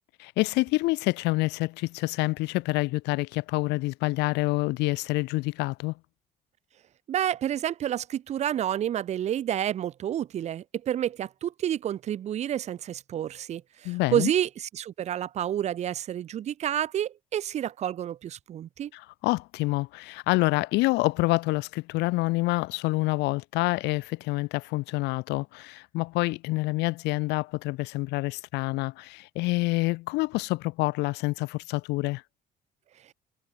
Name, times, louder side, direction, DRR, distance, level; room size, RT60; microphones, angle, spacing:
voice 1, 0.2-5.9 13.8-14.3 18.9-32.2, left 22 dB, 85° left, 0.6 m, -27 dB
voice 2, 7.1-18.9, right 10 dB, 40° right, 0.4 m, -29 dB
cardioid pair, 110°, 17 cm